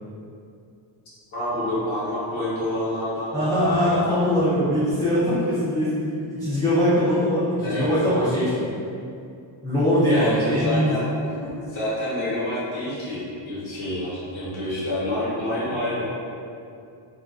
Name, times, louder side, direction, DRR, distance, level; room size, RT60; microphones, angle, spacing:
voice 1, 1.3-4.3 7.6-7.8 10.2-11.0 11.7-16.1, left 1 dB, 75° left, -10 dB, 1.0 m, -28 dB
voice 2, 3.3-8.7 9.6-11.0 11.4-11.5, equal, 10° left, -12 dB, 0.3 m, -22 dB
2.4 x 2.2 x 2.3 m, 2.5 s
wide cardioid pair, 160°, 47 cm